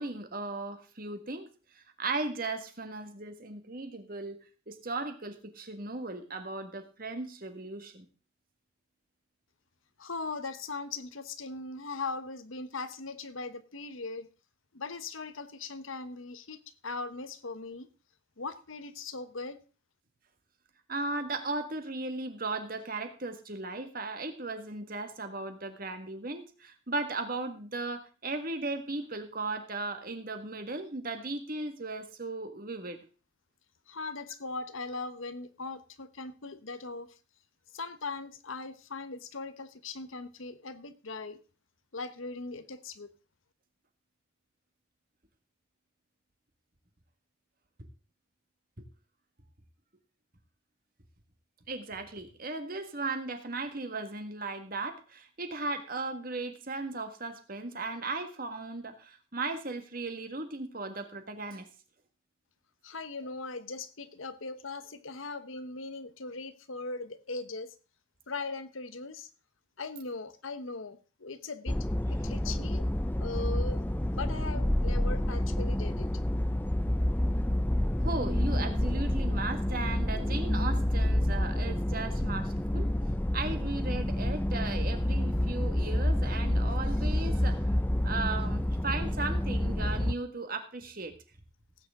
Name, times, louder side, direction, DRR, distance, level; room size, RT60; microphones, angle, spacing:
voice 1, 0.0-1.5 2.0-4.4 4.7-8.1 20.9-33.0 48.8-48.9 51.7-61.7 78.0-82.9 83.3-87.7 88.0-91.1, right 3 dB, 45° right, 7 dB, 1.7 m, -36 dB
voice 2, 10.0-14.3 14.7-17.9 18.4-19.6 33.9-37.2 37.7-41.4 41.9-43.1 62.8-67.7 68.3-69.3 69.8-71.8 72.2-72.8 73.2-73.8 74.1-76.1, left 3 dB, 80° left, 12 dB, 1.1 m, -39 dB
sound 1, 71.7-90.2, left 1 dB, 10° left, 0.5 m, -29 dB
17.0 x 9.1 x 3.8 m, 0.36 s
head